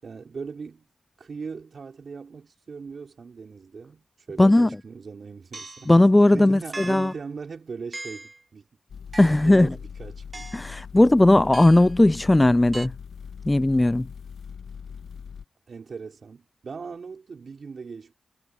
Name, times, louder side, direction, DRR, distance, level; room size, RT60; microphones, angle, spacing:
voice 1, 0.0-0.9 1.2-5.9 6.3-8.6 9.4-10.5 15.7-18.1, right 5 dB, 60° right, 4.5 m, -39 dB
voice 2, 4.4-4.7 5.9-7.1 9.2-9.7 10.5-12.9 13.5-14.1, left 1 dB, 20° left, 0.4 m, -17 dB
sound 1, 4.5-4.7 5.5-5.9 6.7-7.2 7.9-8.4 9.1-9.6 10.3-10.7 11.5-11.9 12.7-12.9, right 3 dB, 35° right, 0.7 m, -39 dB
sound 2, 8.9-15.4, left 6 dB, 70° left, 0.6 m, -41 dB
supercardioid pair, 45°, 0 cm